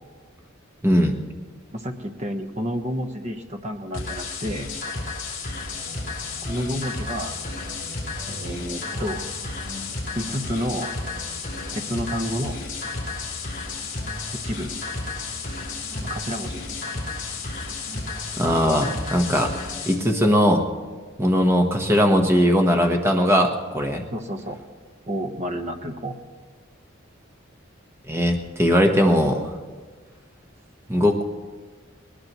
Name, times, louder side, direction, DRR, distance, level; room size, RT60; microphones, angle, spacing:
voice 1, 0.8-1.2 18.4-19.5 19.9-20.6 21.2-24.0 28.1-29.5 30.9-31.2, equal, 15° right, 3 dB, 1.1 m, -19 dB
voice 2, 1.7-4.7 6.5-7.4 8.3-9.3 10.1-10.9 11.7-12.6 14.4-14.7 16.0-16.6 21.7-21.8 24.1-24.6 25.1-26.2, equal, 35° right, 6 dB, 1.1 m, -30 dB
sound 1, 3.9-19.9, left 3 dB, 45° left, 3.4 m, -32 dB
sound 2, 5.6-19.0, equal, 55° right, 4.5 m, -43 dB
20.0 x 20.0 x 3.1 m, 1.5 s
head